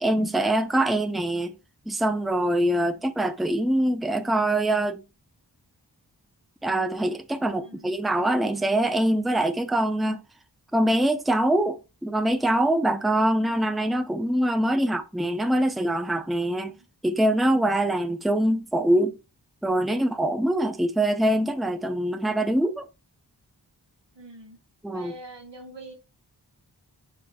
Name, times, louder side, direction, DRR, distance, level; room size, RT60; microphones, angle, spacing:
voice 1, 0.0-1.5 1.9-5.0 6.6-10.2 10.7-16.7 17.0-19.1 19.6-22.9 24.8-25.1, right 1 dB, ahead, 0.6 m, -24 dB
voice 2, 7.6-7.9 14.8-14.9 16.7-16.9 24.1-24.6 24.9-25.9, right 2 dB, 80° right, 1.7 m, -45 dB
6.3 x 3.5 x 4.3 m
wide cardioid pair, 50°, 42 cm